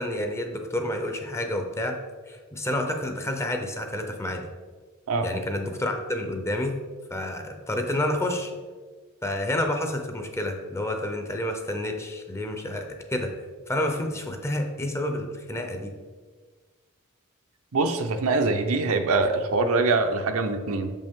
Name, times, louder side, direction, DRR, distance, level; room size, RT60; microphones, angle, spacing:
voice 1, 0.0-2.0 2.3-4.5 5.2-6.8 7.1-8.5 9.2-13.3 13.7-15.9, left 1 dB, 10° left, 4 dB, 0.6 m, -29 dB
voice 2, 17.7-20.9, right 3 dB, 65° right, 6 dB, 0.6 m, -24 dB
6.6 x 5.3 x 3.6 m, 1.4 s
head